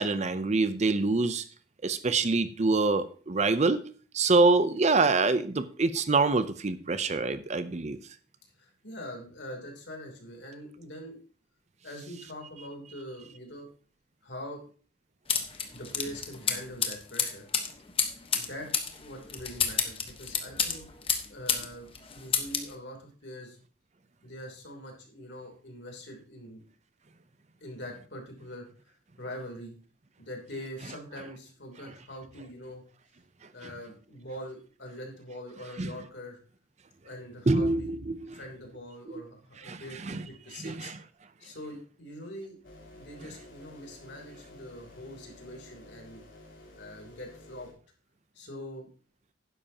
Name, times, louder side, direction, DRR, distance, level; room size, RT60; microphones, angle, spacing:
voice 1, 0.0-1.4 1.8-3.8 4.1-8.0 35.8-35.9 37.5-38.4 39.7-40.2 40.6-41.0, right 3 dB, 35° right, 12 dB, 0.6 m, -25 dB
voice 2, 8.4-11.2 11.8-13.7 14.2-14.6 15.7-17.5 18.3-23.6 24.2-26.6 27.6-29.8 30.2-32.8 33.5-36.4 37.0-37.9 38.3-40.9 41.4-42.6 42.9-46.2 46.7-47.7 48.3-48.9, equal, 60° left, 1 dB, 3.2 m, -43 dB
sound 1, 15.3-21.7 21.9-22.7, left 7 dB, 30° left, 1.1 m, -30 dB
sound 2, 42.6-47.7, left 1 dB, 75° left, 3.6 m, -51 dB
12.0 x 10.0 x 2.9 m, 0.40 s
head